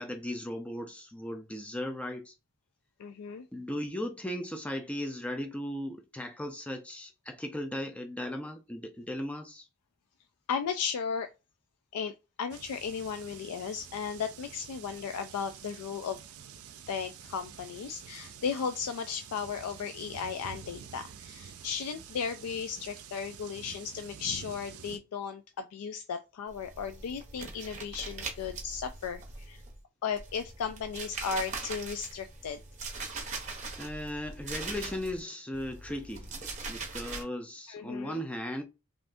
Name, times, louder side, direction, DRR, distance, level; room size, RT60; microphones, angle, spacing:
voice 1, 0.0-2.3 3.5-9.7 33.8-38.6, left 1 dB, 5° left, 0.4 m, -37 dB
voice 2, 3.0-3.5 10.5-11.3 11.9-16.2 16.9-29.6 30.0-32.6 37.7-38.2, left 6 dB, 90° left, 0.3 m, -35 dB
sound 1, 12.5-25.0, right 7 dB, 80° right, 0.5 m, -48 dB
sound 2, 26.5-29.8 30.1-35.2 35.5-37.2, right 4 dB, 35° right, 0.7 m, -41 dB
3.4 x 2.5 x 2.5 m
head